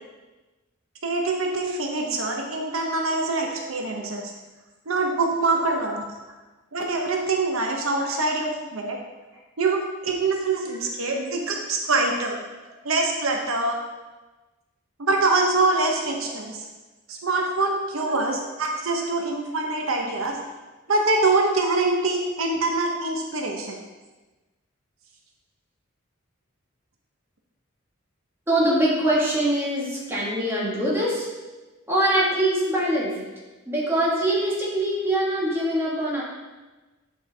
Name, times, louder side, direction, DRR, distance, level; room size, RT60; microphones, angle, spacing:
voice 1, 1.0-4.3 4.9-6.0 6.7-9.0 9.6-12.4 12.8-13.8 15.0-16.7 17.1-20.4 20.9-23.8, right 3 dB, 80° right, 1 dB, 0.8 m, -24 dB
voice 2, 28.5-31.3 31.9-33.3 33.7-36.2, right 1 dB, 10° right, -6 dB, 1.5 m, -23 dB
7.9 x 4.6 x 3.4 m, 1.2 s
head